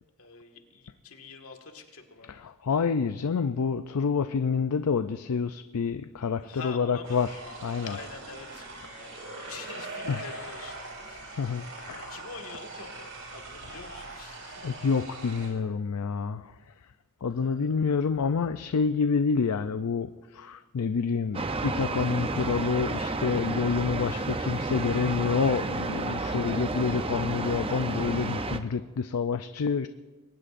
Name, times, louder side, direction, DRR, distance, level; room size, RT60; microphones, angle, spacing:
voice 1, 0.2-2.5 6.4-8.7 9.0-11.7 12.1-14.7 17.3-17.7, left 4 dB, 70° left, 3 dB, 1.9 m, -46 dB
voice 2, 2.3-8.0 10.1-10.5 11.4-12.1 14.6-16.5 17.2-29.9, left 5 dB, 85° left, 10 dB, 0.5 m, -28 dB
sound 1, 7.0-15.5, right 3 dB, 60° right, 4.4 m, -42 dB
sound 2, 21.3-28.6, right 3 dB, 25° right, 0.6 m, -31 dB
22.0 x 18.5 x 2.6 m, 1.3 s
head